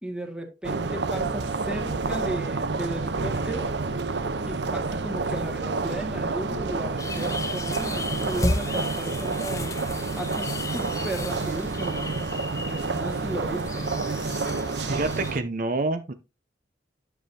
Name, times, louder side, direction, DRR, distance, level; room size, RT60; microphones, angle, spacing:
voice 1, 0.0-3.7 4.4-9.7 10.2-12.1 12.6-13.9, right 1 dB, 5° right, 1.8 m, -35 dB
sound 1, 0.6-15.4, right 3 dB, 80° right, 0.8 m, -29 dB
sound 2, 7.0-15.3, left 2 dB, 20° left, 0.8 m, -34 dB
voice 2, 14.9-16.1, right 2 dB, 50° right, 0.6 m, -27 dB
10.0 x 7.0 x 2.8 m
head